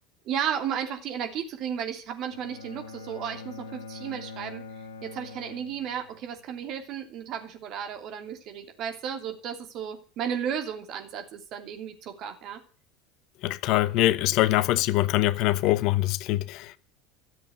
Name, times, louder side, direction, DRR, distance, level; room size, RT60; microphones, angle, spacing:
voice 1, 0.2-4.6 5.0-12.6, right 8 dB, 50° right, 2.9 m, -34 dB
Bowed string instrument, 2.3-6.4, left 4 dB, 85° left, 1.2 m, -43 dB
voice 2, 13.4-16.8, left 16 dB, 55° left, 0.8 m, -23 dB
14.0 x 7.7 x 9.4 m
hypercardioid pair, 70°, 0 cm